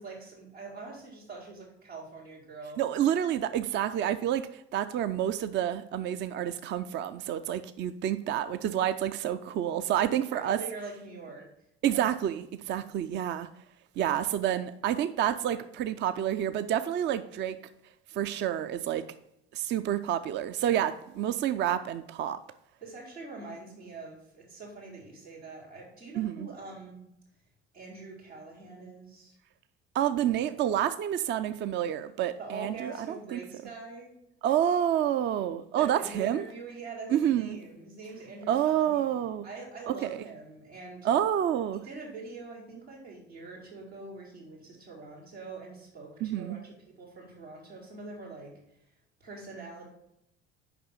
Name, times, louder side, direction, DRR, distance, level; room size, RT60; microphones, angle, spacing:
voice 1, 0.0-2.8 10.0-11.4 11.9-12.0 22.8-27.0 27.7-29.3 32.4-34.1 35.8-39.1 39.4-41.1 41.8-48.5 49.2-49.9, right 3 dB, 90° right, 2.7 m, -44 dB
voice 2, 2.8-10.6 11.8-13.5 14.0-17.6 18.1-19.1 19.5-22.4 26.1-26.5 29.9-33.4 34.4-36.5 37.1-37.6 38.5-39.5 39.9-40.2 41.0-41.9 46.2-46.6, right 10 dB, 35° right, 0.5 m, -29 dB
6.8 x 5.3 x 5.6 m
figure-of-eight pair, 55°, 31 cm